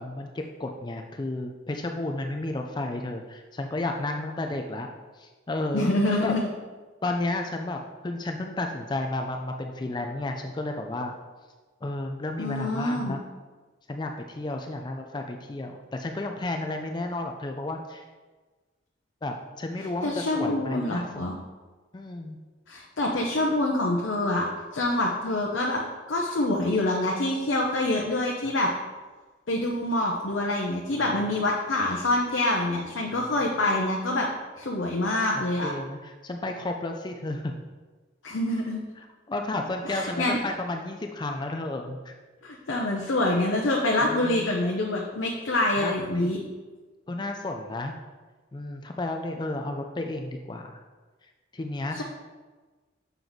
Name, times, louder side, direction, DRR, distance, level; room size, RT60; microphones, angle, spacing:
voice 1, 0.0-4.9 5.1-6.3 7.0-11.1 11.8-13.2 13.9-18.1 19.2-21.3 21.9-22.4 30.9-31.0 35.3-37.6 39.0-42.2 44.0-44.5 45.8-46.3 47.1-47.9 48.5-50.8 51.2-52.0, left 2 dB, 20° left, 3 dB, 0.3 m, -32 dB
voice 2, 5.7-6.5 12.4-13.2 20.0-21.4 22.7-24.5 24.7-25.8 26.1-28.7 29.5-34.3 34.6-35.7 38.2-38.8 39.8-40.4 42.4-46.4, left 1 dB, 70° left, -1 dB, 0.7 m, -26 dB
6.8 x 4.6 x 4.0 m, 1.3 s
head